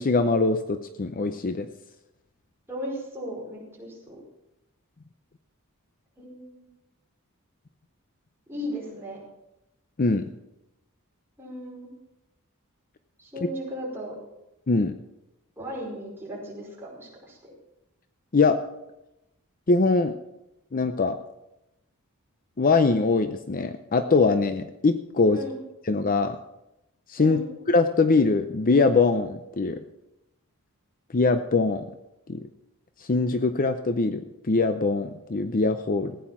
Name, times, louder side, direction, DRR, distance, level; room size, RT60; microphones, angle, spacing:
voice 1, 0.0-1.7 10.0-10.3 13.4-13.5 14.7-15.0 18.3-18.6 19.7-20.2 20.7-21.2 22.6-25.4 25.9-26.4 27.1-27.4 27.7-29.8 31.1-31.8 32.3-32.5 33.0-36.2, left 3 dB, 40° left, 9 dB, 0.6 m, -22 dB
voice 2, 2.7-4.2 6.2-6.7 8.5-9.2 11.4-11.9 13.2-14.2 15.6-17.4 25.3-25.6 27.2-27.5, equal, 10° right, -4 dB, 5.0 m, -36 dB
15.5 x 9.5 x 5.9 m, 0.90 s
head